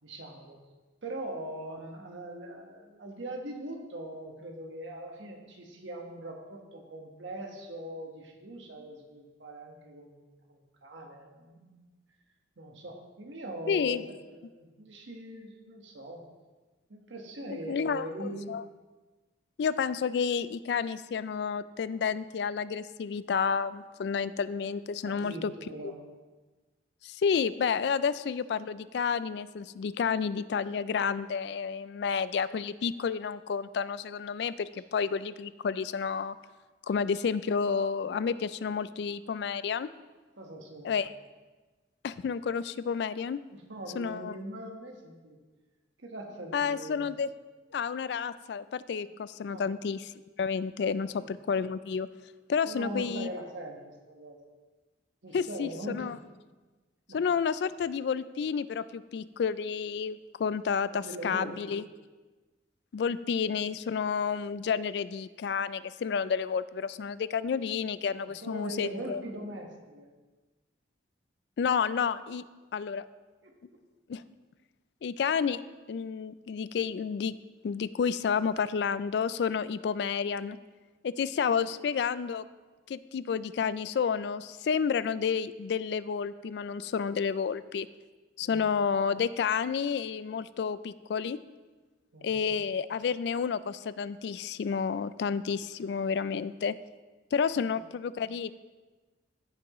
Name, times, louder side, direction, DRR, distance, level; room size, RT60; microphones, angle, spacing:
voice 1, 0.0-0.6 1.0-10.2 10.5-11.8 12.6-16.2 16.9-18.5 25.0-26.0 40.4-41.0 43.5-45.4 46.0-47.1 49.5-49.7 51.0-51.3 52.6-54.4 55.2-56.1 57.1-57.2 60.9-61.8 68.2-70.1 73.4-73.6 88.4-88.6 92.1-92.5, right 1 dB, 85° right, 2 dB, 1.3 m, -41 dB
voice 2, 13.7-14.0 17.5-18.6 19.6-25.5 25.8-25.9 27.0-36.3 36.9-39.9 40.8-41.1 42.0-43.4 44.0-44.4 46.5-47.3 47.7-50.0 50.4-52.1 52.5-53.3 55.3-56.2 57.1-61.8 62.9-69.2 71.6-72.4 72.7-73.0 74.1-74.2 75.0-75.6 75.9-77.3 77.6-80.6 81.0-82.4 82.9-87.9 88.4-91.4 92.2-96.7 97.3-98.5, left 6 dB, 65° left, 16 dB, 0.3 m, -30 dB
14.5 x 6.0 x 3.1 m, 1.3 s
head